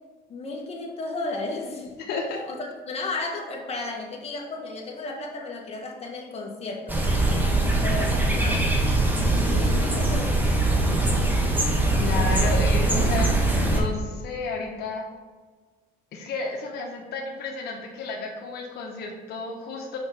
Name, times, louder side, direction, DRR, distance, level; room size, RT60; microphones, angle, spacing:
voice 1, 0.3-1.9 2.8-7.0 7.8-8.7 9.2-10.4, left 2 dB, 35° left, 0 dB, 1.6 m, -33 dB
voice 2, 2.1-2.4 12.0-15.0 16.1-20.0, left 3 dB, 75° left, 0 dB, 1.1 m, -32 dB
sound 1, 6.9-13.8, right 2 dB, 10° right, 1.6 m, -22 dB
6.2 x 5.6 x 5.0 m, 1.4 s
cardioid pair, 110°, 17 cm